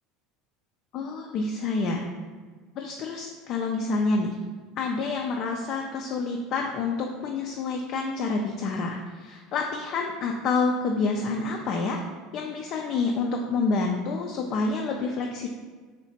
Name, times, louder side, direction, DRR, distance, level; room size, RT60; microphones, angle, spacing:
voice 1, 0.9-2.1 2.8-4.4 4.8-12.0 12.3-15.5, left 3 dB, 55° left, 1 dB, 0.3 m, -28 dB
3.2 x 2.8 x 2.7 m, 1.4 s
hypercardioid pair, 75°, 0 cm